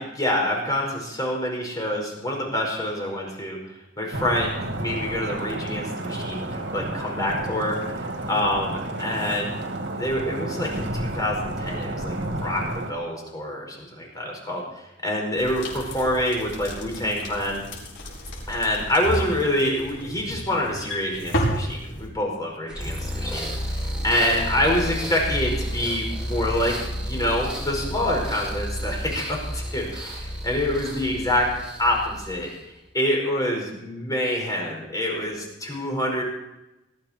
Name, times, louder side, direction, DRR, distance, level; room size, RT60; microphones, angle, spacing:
voice 1, 0.0-3.6 4.0-7.8 8.3-9.5 10.0-14.6 15.0-17.6 18.5-31.5 31.8-32.5 32.9-36.2, left 1 dB, 20° left, 0 dB, 5.0 m, -26 dB
sound 1, 4.1-12.9, right 1 dB, 75° right, 2.3 m, -31 dB
sound 2, 15.4-22.1, equal, 85° left, 5.6 m, -32 dB
sound 3, 22.7-32.7, equal, 5° right, 4.7 m, -31 dB
20.5 x 14.0 x 4.5 m, 0.92 s
head